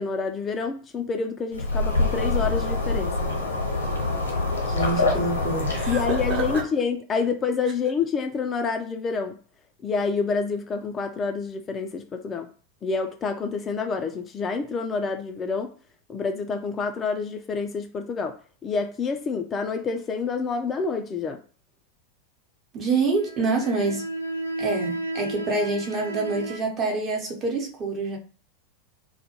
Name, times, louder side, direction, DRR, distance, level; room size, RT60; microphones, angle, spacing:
voice 1, 0.0-3.1 5.9-9.4 9.8-12.5 12.8-15.7 16.1-18.4 18.6-21.4, left 5 dB, 25° left, 0.3 m, -28 dB
sound 1, 1.5-6.6, left 2 dB, 80° left, 0.7 m, -25 dB
voice 2, 4.7-6.6 22.7-24.0 24.6-28.2, right 3 dB, 35° right, 0.8 m, -27 dB
sound 2, 23.1-26.6, right 2 dB, 80° right, 0.3 m, -32 dB
2.2 x 2.1 x 2.9 m
figure-of-eight pair, 85°, 0 cm